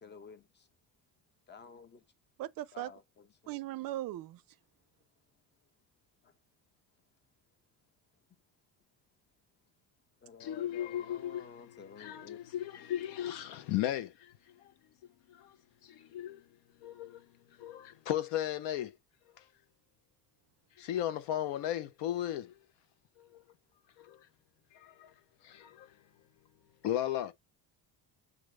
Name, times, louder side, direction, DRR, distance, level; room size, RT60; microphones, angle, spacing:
voice 1, 0.0-0.7 1.5-2.0 2.7-3.6 6.2-6.3 10.2-12.4, left 6 dB, 25° left, 0.6 m, -52 dB
voice 2, 2.4-2.9 3.5-4.4, right 15 dB, 55° right, 0.5 m, -38 dB
voice 3, 10.4-14.7 15.0-15.6 15.8-16.5 16.8-19.0 19.4-19.5 20.8-22.6 23.2-23.4 24.0-24.3 24.7-25.1 25.4-26.0 26.8-27.3, left 12 dB, 80° left, 0.8 m, -36 dB
6.2 x 2.6 x 3.1 m
cardioid pair, 115°, 42 cm